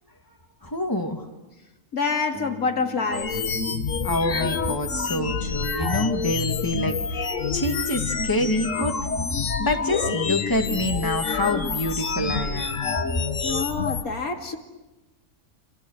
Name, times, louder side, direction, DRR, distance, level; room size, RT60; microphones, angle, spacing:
voice 1, 0.6-1.2 4.0-9.0 9.6-12.8, left 1 dB, 15° left, 3 dB, 2.5 m, -26 dB
voice 2, 1.9-3.4 13.4-14.6, left 4 dB, 80° left, 3 dB, 2.9 m, -27 dB
Bass guitar, 2.3-6.4, equal, 70° right, 6.2 m, -45 dB
sound 1, 3.1-14.0, left 5 dB, 60° left, 1.9 m, -27 dB
29.5 x 27.0 x 6.7 m, 1.1 s
omnidirectional pair, 1.5 m